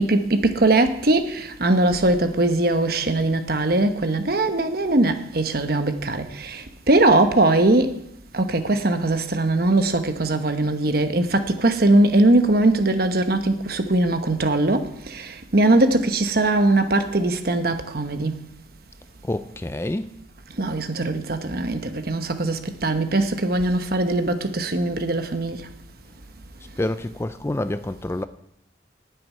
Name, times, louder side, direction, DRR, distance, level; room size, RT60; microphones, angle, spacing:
voice 1, 0.0-8.0 8.3-18.4 20.6-25.7, right 2 dB, 55° right, 1.1 m, -21 dB
voice 2, 19.2-20.1 26.8-28.2, left 1 dB, 15° left, 0.4 m, -27 dB
9.5 x 7.7 x 9.3 m
head